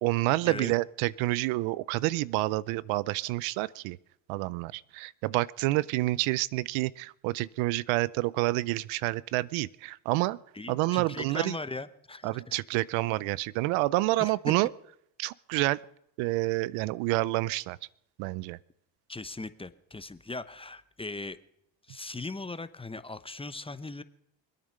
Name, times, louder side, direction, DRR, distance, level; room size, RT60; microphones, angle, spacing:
voice 1, 0.0-4.0 4.3-10.4 10.7-11.6 12.2-14.7 15.2-15.8 16.2-17.8 18.2-18.6, right 19 dB, 80° right, 21 dB, 0.6 m, -28 dB
voice 2, 10.5-12.4 14.2-14.5 19.1-21.4 21.9-24.0, left 3 dB, 10° left, 13 dB, 0.8 m, -39 dB
24.5 x 8.9 x 6.5 m, 0.75 s
supercardioid pair, 85°, 48 cm